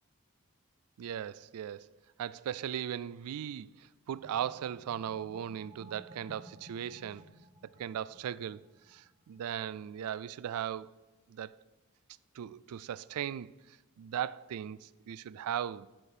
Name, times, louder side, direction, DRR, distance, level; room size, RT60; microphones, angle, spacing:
voice 1, 1.0-1.9 2.2-7.3 7.6-10.9 11.3-11.6 12.3-15.9, right 9 dB, 85° right, 0.3 m, -38 dB
sound 1, 4.1-9.3, equal, 35° right, 1.1 m, -56 dB
12.0 x 5.0 x 4.4 m
head